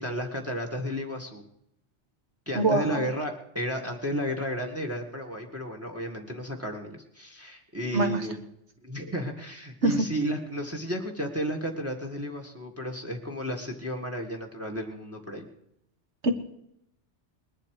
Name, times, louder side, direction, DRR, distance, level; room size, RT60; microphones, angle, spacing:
voice 1, 0.0-1.4 2.5-8.4 8.8-15.5, equal, 10° right, 2 dB, 1.9 m, -33 dB
voice 2, 2.5-3.1 7.9-8.2 9.8-10.0 16.2-16.3, right 2 dB, 75° right, 6 dB, 1.8 m, -24 dB
20.0 x 11.5 x 4.9 m, 0.77 s
omnidirectional pair, 1.2 m